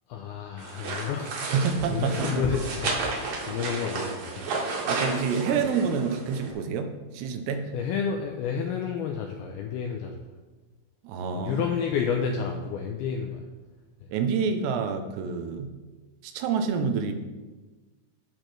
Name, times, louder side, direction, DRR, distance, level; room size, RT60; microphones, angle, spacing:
voice 1, 0.1-4.6 5.1-5.2 7.7-10.2 11.4-13.5 14.0-14.1, left 6 dB, 85° left, 3 dB, 2.2 m, -30 dB
sound 1, 0.6-6.5, right 3 dB, 60° right, 3.2 m, -32 dB
voice 2, 1.5-2.2 4.9-7.7 11.0-11.7 14.1-15.7 16.2-17.1, right 6 dB, 80° right, 6 dB, 2.8 m, -28 dB
15.0 x 6.3 x 3.3 m, 1.3 s
omnidirectional pair, 5.1 m